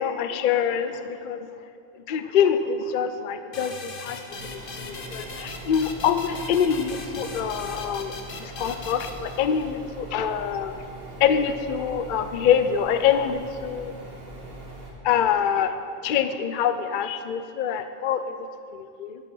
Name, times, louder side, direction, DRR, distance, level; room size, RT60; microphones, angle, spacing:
voice 1, 0.0-1.5 2.1-4.2 4.5-8.1 8.4-10.7 11.2-13.9 15.0-15.8 16.0-18.4 18.7-19.2, left 8 dB, 75° left, 10 dB, 0.4 m, -25 dB
sound 1, 3.5-9.9, left 3 dB, 45° left, 1.0 m, -39 dB
sound 2, 4.3-14.9, right 2 dB, 45° right, 1.9 m, -41 dB
10.5 x 8.3 x 6.1 m, 2.4 s
omnidirectional pair, 1.5 m